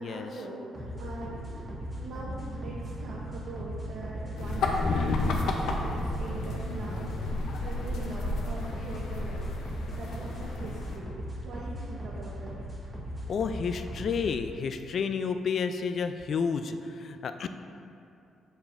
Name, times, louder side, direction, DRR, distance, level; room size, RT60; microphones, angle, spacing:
voice 1, 0.0-1.6 1.9-11.1 11.4-12.6, right 2 dB, 65° right, -6 dB, 1.0 m, -42 dB
sound 1, 0.7-14.3, equal, 15° right, 1.0 m, -39 dB
sound 2, 1.5-11.4, right 5 dB, 25° left, 1.7 m, -47 dB
sound 3, 4.4-11.0, left 3 dB, 85° left, 0.7 m, -32 dB
voice 2, 13.3-17.5, left 6 dB, 45° left, 9 dB, 0.3 m, -31 dB
8.7 x 7.2 x 2.6 m, 2.6 s
cardioid pair, 180°, 0 cm